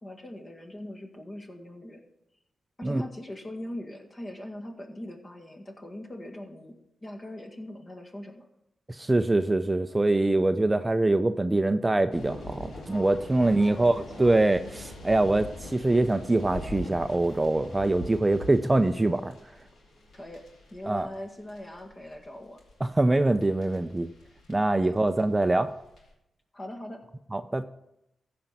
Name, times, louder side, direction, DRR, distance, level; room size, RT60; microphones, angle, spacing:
voice 1, 0.0-2.0 2.8-6.8 7.0-8.5 13.4-14.3 20.1-20.4 20.7-22.6 24.8-25.0 26.5-27.0, left 1 dB, 30° left, 2 dB, 1.9 m, -41 dB
voice 2, 8.9-19.3 20.9-21.1 22.8-24.1 24.5-25.7 27.3-27.7, right 2 dB, 20° right, 10 dB, 0.4 m, -24 dB
sound 1, 12.1-26.1, left 1 dB, 75° left, 3.4 m, -43 dB
14.5 x 5.2 x 5.9 m, 0.85 s
cardioid pair, 85°, 0 cm